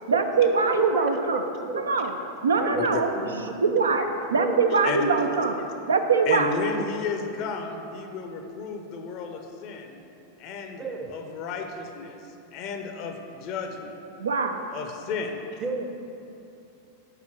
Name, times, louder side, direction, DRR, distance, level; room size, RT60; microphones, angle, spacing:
voice 1, 0.1-1.4 1.7-2.1 2.4-3.1 3.6-4.0 4.3-5.5 5.9-6.5 14.2-14.6, right 4 dB, 70° right, 6 dB, 0.4 m, -22 dB
voice 2, 0.7-1.9 2.6-3.8 4.3-4.7 10.8-11.1 15.6-15.9, right 3 dB, 20° right, 4 dB, 0.7 m, -32 dB
voice 3, 4.7-5.1 6.3-10.0 10.4-10.8 11.1-12.2 12.5-14.0 14.7-15.6, left 5 dB, 40° left, 5 dB, 0.7 m, -33 dB
5.2 x 4.9 x 6.2 m, 2.8 s
figure-of-eight pair, 90°, 0 cm